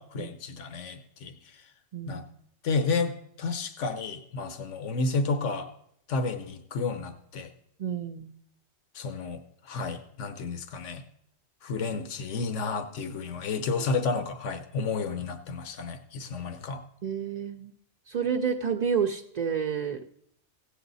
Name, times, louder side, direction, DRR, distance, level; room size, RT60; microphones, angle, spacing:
voice 1, 0.0-1.4 2.1-2.2 2.6-5.7 6.1-7.5 8.9-11.0 11.6-16.8, left 4 dB, 80° left, 8 dB, 1.2 m, -31 dB
voice 2, 1.9-2.2 7.8-8.3 17.0-17.7 18.1-20.1, right 7 dB, 50° right, 3 dB, 0.5 m, -29 dB
16.5 x 8.3 x 4.0 m, 0.71 s
omnidirectional pair, 1.2 m